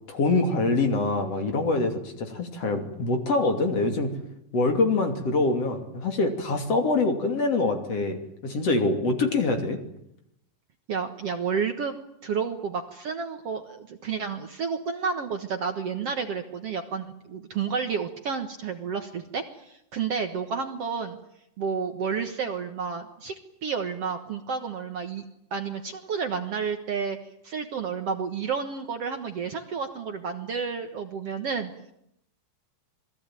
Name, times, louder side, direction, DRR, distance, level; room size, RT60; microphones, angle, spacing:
voice 1, 0.1-4.1 4.5-9.8, left 3 dB, 50° left, 5 dB, 3.6 m, -25 dB
voice 2, 10.9-11.9 12.2-21.2 21.6-23.3 23.6-25.2 25.5-27.2 27.4-31.7, right 6 dB, 55° right, 7 dB, 2.0 m, -31 dB
27.5 x 20.5 x 9.1 m, 0.77 s
omnidirectional pair, 3.9 m